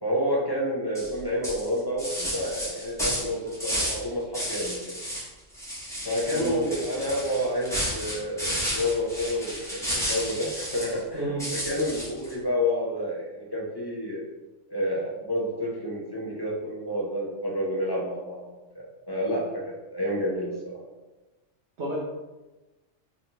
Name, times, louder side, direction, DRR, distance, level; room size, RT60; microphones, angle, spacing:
voice 1, 0.0-5.0 6.0-11.3 11.6-14.2 14.7-18.5 18.7-20.8, equal, 35° left, -5 dB, 0.3 m, -29 dB
sound 1, 0.9-1.1 1.4-4.0 4.3-5.3 5.5-11.0 11.4-12.3, equal, 5° left, 0.9 m, -32 dB
voice 2, 6.3-6.6 11.1-11.5 21.8-22.0, right 1 dB, 65° right, -5 dB, 0.9 m, -31 dB
4.1 x 2.6 x 2.8 m, 1.1 s
omnidirectional pair, 1.3 m